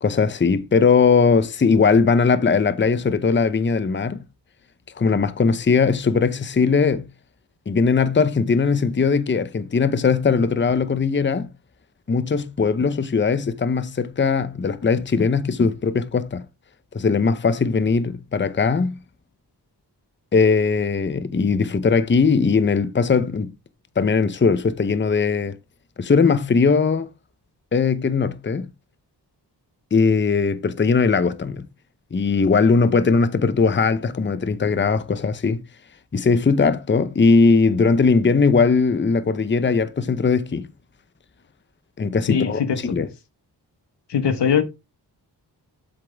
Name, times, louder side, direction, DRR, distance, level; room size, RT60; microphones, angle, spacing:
voice 1, 0.0-4.2 5.0-7.0 7.7-11.5 12.1-16.4 16.9-19.0 20.3-23.5 24.0-25.6 26.0-27.1 27.7-28.7 29.9-31.7 32.1-35.6 36.1-40.7 42.0-43.1, left 5 dB, 30° left, 0.7 m, -19 dB
voice 2, 42.3-42.9 44.1-44.6, left 7 dB, 85° left, 1.3 m, -21 dB
7.8 x 7.6 x 3.4 m
wide cardioid pair, 85°, 41 cm